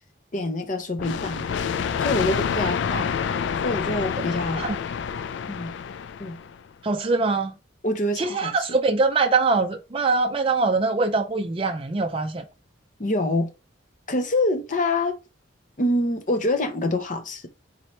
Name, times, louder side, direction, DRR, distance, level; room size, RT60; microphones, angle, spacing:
voice 1, 0.3-1.7 2.0-3.0 3.6-4.6 5.5-5.7 6.2-6.4 7.8-8.8 13.0-13.5 14.1-15.2 15.8-17.5, left 2 dB, 40° left, 0.7 m, -25 dB
sound 1, 1.0-6.6, left 6 dB, 65° left, 0.3 m, -28 dB
voice 2, 6.8-7.5 8.2-12.4, right 3 dB, 25° right, 0.4 m, -23 dB
4.1 x 2.8 x 3.1 m
head